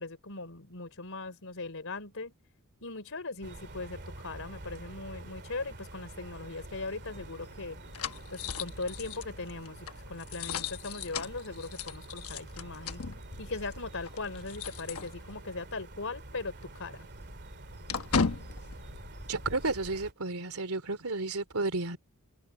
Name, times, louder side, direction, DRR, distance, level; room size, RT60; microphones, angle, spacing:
voice 1, 0.0-2.3 2.8-7.8 8.3-13.0 13.4-17.1, left 3 dB, 65° left, 4.2 m, -39 dB
sound 1, 3.4-20.1, right 2 dB, 50° right, 2.5 m, -47 dB
sound 2, 6.8-15.6 15.9-16.1 16.4-19.9, left 5 dB, 85° left, 1.1 m, -38 dB
voice 2, 19.3-22.0, right 3 dB, 90° right, 2.9 m, -32 dB
open air
head